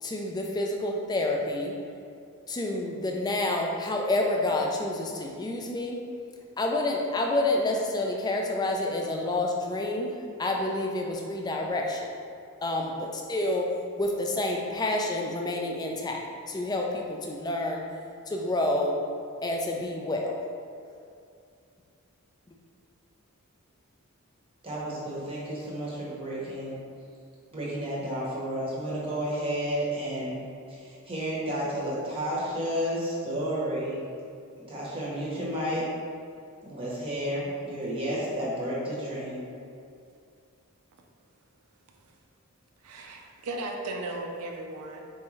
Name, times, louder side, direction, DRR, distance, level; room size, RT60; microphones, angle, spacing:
voice 1, 0.0-1.7 2.5-6.0 6.6-10.1 10.4-12.2 12.6-13.7 14.0-17.8 18.3-18.9 19.4-20.4, left 2 dB, 20° left, 1 dB, 0.4 m, -28 dB
voice 2, 24.6-26.8 27.5-30.4 30.7-34.1 34.7-35.9 36.6-39.5, equal, 25° right, -7 dB, 0.8 m, -31 dB
voice 3, 42.8-45.0, right 2 dB, 85° right, 2 dB, 0.5 m, -36 dB
4.3 x 3.5 x 3.1 m, 2.4 s
head